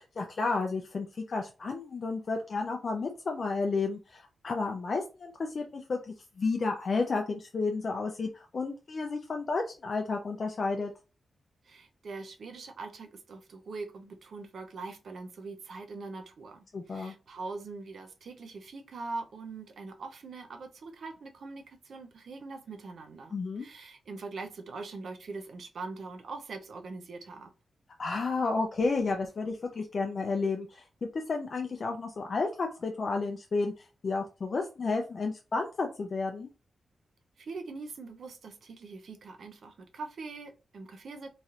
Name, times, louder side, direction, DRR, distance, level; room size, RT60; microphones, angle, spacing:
voice 1, 0.2-10.9 16.7-17.1 23.3-23.7 28.0-30.8 31.3-36.5, left 3 dB, 55° left, 3 dB, 0.4 m, -32 dB
voice 2, 11.6-27.5 37.4-41.3, right 3 dB, 75° right, 6 dB, 0.5 m, -42 dB
3.0 x 2.7 x 2.4 m, 0.32 s
cardioid pair, 75°, 0 cm